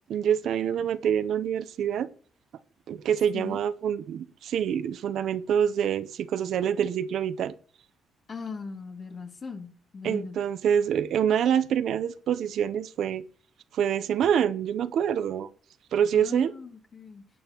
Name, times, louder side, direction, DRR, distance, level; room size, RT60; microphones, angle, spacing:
voice 1, 0.1-2.1 2.9-7.5 10.0-13.2 13.7-15.5 15.9-16.5, right 8 dB, 70° right, 0.7 m, -26 dB
voice 2, 8.3-10.4 16.1-17.2, left 4 dB, 40° left, 2.4 m, -39 dB
18.0 x 8.7 x 3.0 m
cardioid pair, 90°, 0 cm